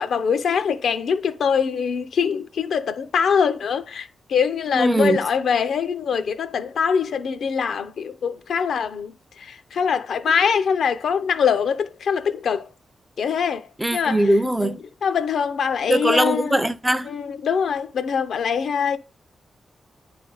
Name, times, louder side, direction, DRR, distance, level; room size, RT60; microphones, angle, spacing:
voice 1, 0.0-12.7 13.2-14.3 14.6-14.7 15.0-16.6 17.0-19.0, left 6 dB, 80° left, 0.6 m, -23 dB
voice 2, 4.7-5.2 13.8-14.8 15.9-17.1, right 1 dB, 10° right, 0.4 m, -20 dB
9.3 x 3.4 x 3.8 m
wide cardioid pair, 135°, 0 cm